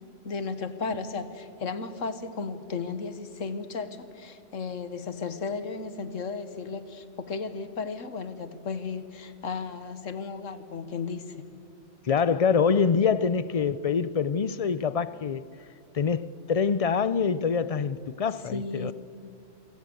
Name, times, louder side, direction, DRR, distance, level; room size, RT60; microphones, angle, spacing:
voice 1, 0.2-11.4 18.5-18.9, left 4 dB, 80° left, 1.7 m, -34 dB
voice 2, 12.0-15.4 15.9-18.9, left 6 dB, 50° left, 0.4 m, -25 dB
27.0 x 17.0 x 7.8 m
omnidirectional pair, 1.3 m